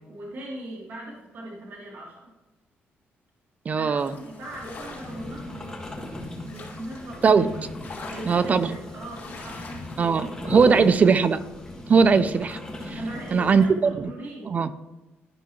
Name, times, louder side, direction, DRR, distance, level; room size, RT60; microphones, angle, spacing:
voice 1, 0.1-2.3 3.8-5.8 6.4-7.6 8.0-9.8 10.1-10.6 13.0-14.5, right 1 dB, 55° right, -5 dB, 1.9 m, -40 dB
voice 2, 3.7-4.1 7.2-7.5 8.3-8.8 10.0-11.4 11.9-12.6 12.9-13.0 13.3-13.6 14.0-14.1 14.5-14.7, right 5 dB, 35° right, 13 dB, 0.4 m, -19 dB
sound 1, 4.0-10.9, left 3 dB, 50° left, 2.1 m, -45 dB
sound 2, 4.4-13.7, left 1 dB, 15° left, 1.5 m, -36 dB
11.5 x 5.7 x 3.0 m, 1.1 s
cardioid pair, 135°, 4 cm